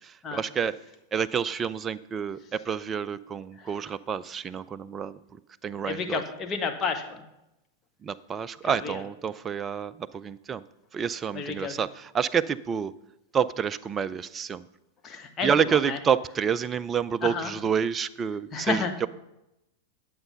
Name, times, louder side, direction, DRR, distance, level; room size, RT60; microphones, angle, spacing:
voice 1, 0.3-0.8 1.1-5.1 5.6-6.2 8.0-10.6 10.9-12.9 13.3-14.6 15.4-19.1, right 7 dB, 20° right, 16 dB, 0.4 m, -28 dB
voice 2, 5.8-7.2 8.6-9.0 11.3-11.8 15.0-16.0 17.2-17.5 18.5-18.9, left 5 dB, 25° left, 4 dB, 1.4 m, -31 dB
11.0 x 7.7 x 5.6 m, 0.90 s
figure-of-eight pair, 90°, 0 cm